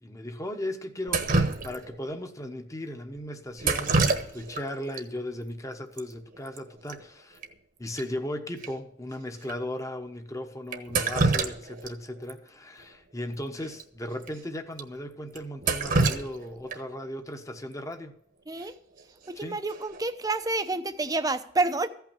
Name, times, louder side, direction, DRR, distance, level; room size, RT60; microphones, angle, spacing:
voice 1, 0.0-4.0 4.3-7.4 7.8-18.1 19.4-19.6, left 1 dB, 15° left, 1.1 m, -37 dB
Drip, 1.1-2.1 3.6-4.6 4.9-5.0 6.0-6.1 6.3-6.6 6.9-7.0 7.4-7.5 8.0-8.1 8.6-8.7 9.4-9.5 10.7-11.9 12.3-12.4 13.7-13.8 14.2-14.3 14.8-14.9 15.3-17.0 19.0-19.3 19.7-20.1, right 3 dB, 50° right, 1.2 m, -27 dB
voice 2, 18.5-18.8 19.3-21.9, right 3 dB, 20° right, 0.7 m, -28 dB
15.0 x 5.9 x 8.8 m
head